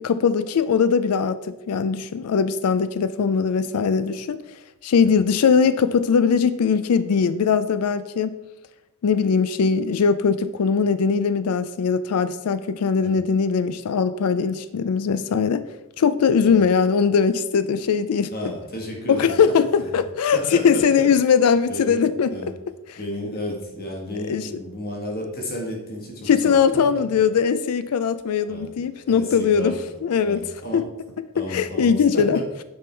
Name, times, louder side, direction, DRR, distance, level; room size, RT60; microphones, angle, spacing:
voice 1, 0.0-1.4 1.7-4.4 4.8-8.3 9.0-15.6 16.0-18.3 19.1-22.4 22.9-23.0 24.3-24.5 26.3-29.8 30.0-30.5 30.7-30.8 31.5-32.4, left 6 dB, 90° left, 13 dB, 0.4 m, -20 dB
voice 2, 18.3-19.3 20.3-21.0 21.7-22.5 23.0-26.6 28.5-28.7 29.1-30.8 31.3-32.4, left 1 dB, 45° left, 0 dB, 1.6 m, -32 dB
8.9 x 5.3 x 4.5 m, 1.0 s
head